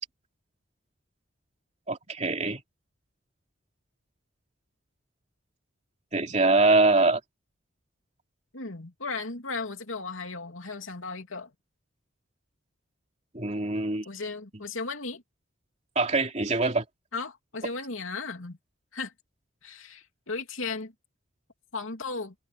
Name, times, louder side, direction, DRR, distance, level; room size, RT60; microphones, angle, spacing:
voice 1, 1.9-2.6 6.1-7.2 13.3-14.1 15.9-16.8, right 3 dB, 35° right, 3.3 m, -23 dB
voice 2, 8.5-11.5 14.0-15.2 17.1-18.6 18.9-19.1 19.6-20.9 21.7-22.3, left 4 dB, 80° left, 3.0 m, -35 dB
head